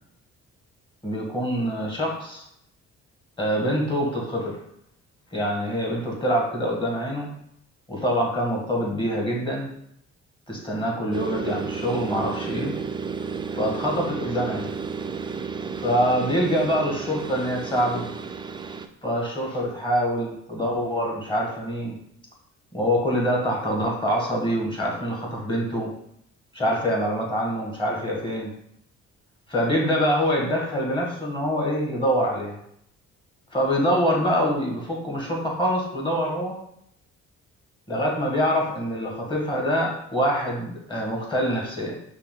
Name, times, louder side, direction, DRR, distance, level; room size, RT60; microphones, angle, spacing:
voice 1, 1.0-2.4 3.4-4.6 5.3-7.3 7.9-9.7 10.5-12.7 13.5-14.7 15.8-18.1 19.0-22.0 22.7-25.9 26.5-28.5 29.5-32.6 33.5-36.6 37.9-42.0, equal, 15° left, -2 dB, 1.6 m, -25 dB
sound 1, 11.1-18.9, right 5 dB, 15° right, 0.3 m, -32 dB
5.4 x 2.4 x 3.8 m, 0.72 s
cardioid pair, 90°, 30 cm